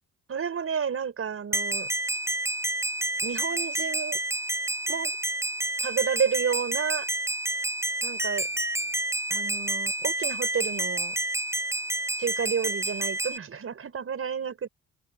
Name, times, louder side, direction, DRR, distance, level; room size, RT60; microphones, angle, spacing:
voice 1, 0.3-1.9 3.2-4.2 4.9-5.2 5.8-7.1 8.0-8.5 9.3-11.2 12.2-14.7, right 7 dB, 45° right, 5.7 m, -30 dB
sound 1, 1.5-13.4, right 1 dB, 10° right, 8.0 m, -29 dB
open air
cardioid pair, 90°, 30 cm